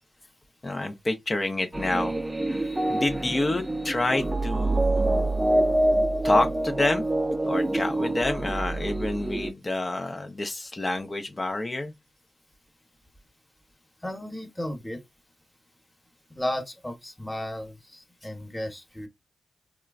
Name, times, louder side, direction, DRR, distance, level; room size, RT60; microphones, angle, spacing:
voice 1, 0.6-2.1 2.5-5.3 6.2-7.0 7.4-11.9, left 2 dB, 35° left, 0.5 m, -28 dB
sound 1, 1.7-9.5, right 1 dB, 20° right, 0.5 m, -26 dB
voice 2, 14.0-15.0 16.3-19.1, left 1 dB, 10° left, 1.0 m, -34 dB
3.0 x 2.2 x 2.3 m
supercardioid pair, 45°, 0 cm